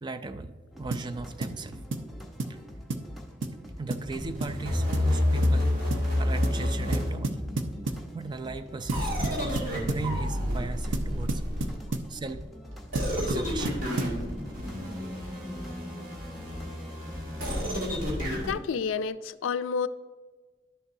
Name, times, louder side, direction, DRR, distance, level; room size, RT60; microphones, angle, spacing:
voice 1, 0.0-1.9 2.5-2.6 3.8-5.7 6.2-7.4 8.1-11.5 12.1-12.5 13.2-13.8, right 3 dB, 25° right, 0.3 m, -37 dB
sound 1, 0.7-17.7, equal, ahead, 0.8 m, -45 dB
sound 2, 0.9-1.1 1.4-1.6 1.9-2.1 2.4-2.6 2.9-3.1 3.4-3.6 3.9-4.1 4.4-4.6 4.9-5.1 5.4-5.6 5.9-6.1 6.4-6.6 6.9-8.1 8.9-10.1 10.9-12.1 13.0-14.2, right 2 dB, 75° right, 0.6 m, -32 dB
sound 3, 4.1-7.8 8.9-12.0 12.9-18.5, left 1 dB, 45° right, 2.1 m, -29 dB
voice 2, 18.5-19.9, left 6 dB, 85° left, 0.4 m, -29 dB
11.5 x 6.7 x 2.6 m
head